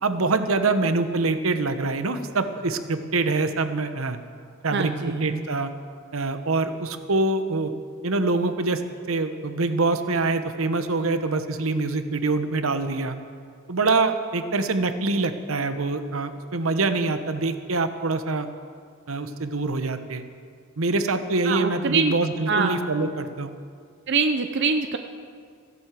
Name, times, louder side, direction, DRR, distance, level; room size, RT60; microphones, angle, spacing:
voice 1, 0.0-4.2 4.6-5.7 6.1-7.7 8.0-8.8 9.1-13.2 13.7-18.5 19.1-20.2 20.8-23.5, right 3 dB, 90° right, 9 dB, 1.0 m, -25 dB
voice 2, 4.7-5.4 21.5-22.1 22.5-22.8 24.1-25.0, right 4 dB, 55° right, 7 dB, 0.7 m, -24 dB
15.5 x 11.0 x 7.6 m, 2.1 s
head